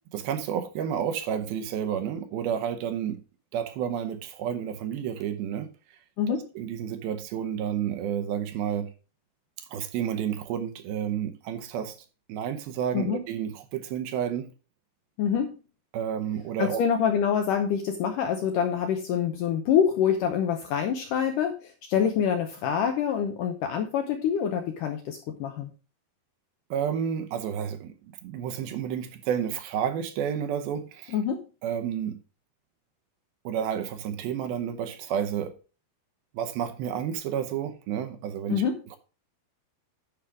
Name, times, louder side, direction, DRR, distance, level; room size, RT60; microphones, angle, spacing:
voice 1, 0.1-3.2 3.5-5.7 6.3-8.9 9.7-12.0 12.3-14.5 15.9-16.8 26.7-31.2 31.6-32.2 33.4-35.5 36.3-38.6, right 9 dB, 75° right, 2.5 m, -30 dB
voice 2, 15.2-15.6 16.6-25.7 31.1-31.4 38.5-38.8, left 8 dB, 80° left, 2.0 m, -26 dB
10.5 x 5.0 x 4.8 m
omnidirectional pair, 4.7 m